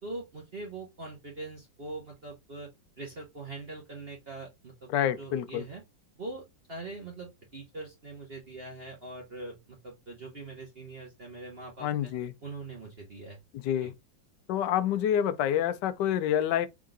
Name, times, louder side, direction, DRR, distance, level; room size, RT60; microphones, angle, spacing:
voice 1, 0.0-2.7 3.0-5.8 6.1-12.1 12.4-13.4 13.8-13.9, right 2 dB, 35° right, 1.1 m, -42 dB
voice 2, 4.9-5.6 11.8-12.3 13.6-13.9 14.5-16.7, left 10 dB, 75° left, 1.2 m, -27 dB
3.8 x 3.7 x 3.7 m
omnidirectional pair, 2.1 m